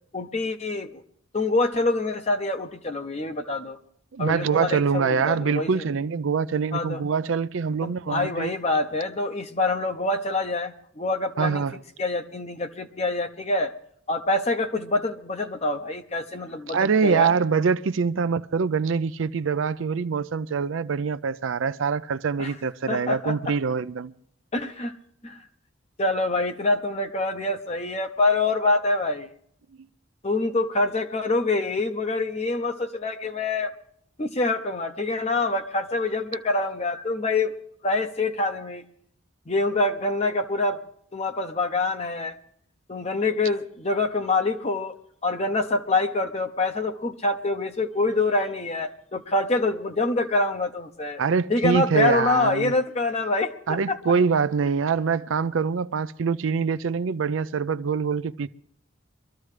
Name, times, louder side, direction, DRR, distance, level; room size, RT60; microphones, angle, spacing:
voice 1, 0.1-1.0 1.3-3.8 4.2-5.8 6.7-7.0 7.8-11.7 12.0-13.7 14.1-17.3 22.4-22.5 22.9-23.5 24.5-24.9 25.2-25.4 26.0-29.3 30.2-33.7 34.2-37.5 37.8-38.8 39.5-40.8 41.1-42.4 42.9-45.0 45.2-51.2 51.5-54.0, left 2 dB, 30° left, 0.7 m, -26 dB
voice 2, 4.1-8.5 11.4-11.8 16.7-24.1 51.2-52.7 53.7-58.5, right 5 dB, 75° right, 0.5 m, -24 dB
23.5 x 13.5 x 3.3 m
head